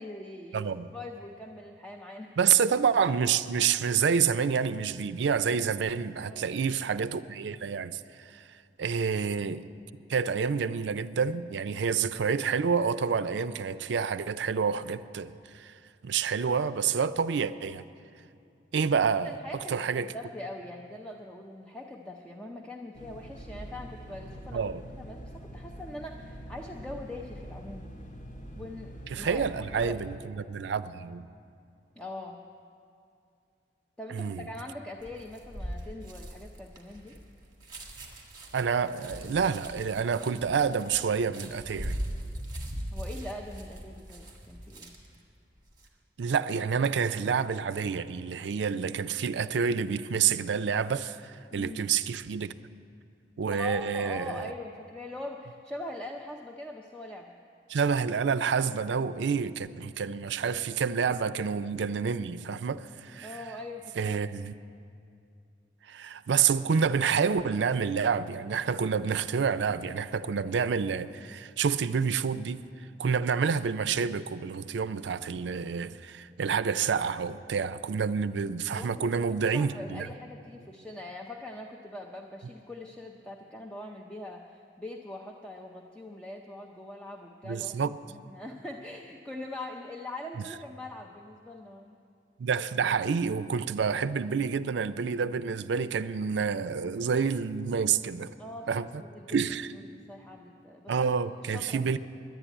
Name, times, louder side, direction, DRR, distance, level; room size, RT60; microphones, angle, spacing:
voice 1, 0.0-2.4 6.3-6.5 19.2-24.7 25.0-27.9 28.5-30.0 32.0-32.4 34.0-37.2 42.9-44.9 51.5-51.9 53.5-57.4 63.2-64.3 78.8-92.0 98.4-99.5 99.9-101.1 101.4-102.0, left 1 dB, 5° left, 0.6 m, -42 dB
voice 2, 0.5-0.9 2.4-8.0 8.3-8.5 8.8-9.7 10.1-15.7 16.0-17.8 18.7-19.4 19.7-20.1 24.5-24.8 29.1-31.3 34.1-34.5 38.5-42.0 46.2-52.5 53.4-54.5 57.7-63.3 64.0-64.5 65.9-72.6 73.0-80.1 87.4-88.0 92.4-98.3 98.7-99.0 99.3-99.7 100.9-102.0, right 6 dB, 70° right, 0.4 m, -28 dB
sound 1, 22.9-30.2, equal, 45° left, 1.0 m, -44 dB
sound 2, 35.0-45.2 45.6-45.9, equal, 25° right, 1.8 m, -40 dB
11.0 x 9.8 x 9.0 m
head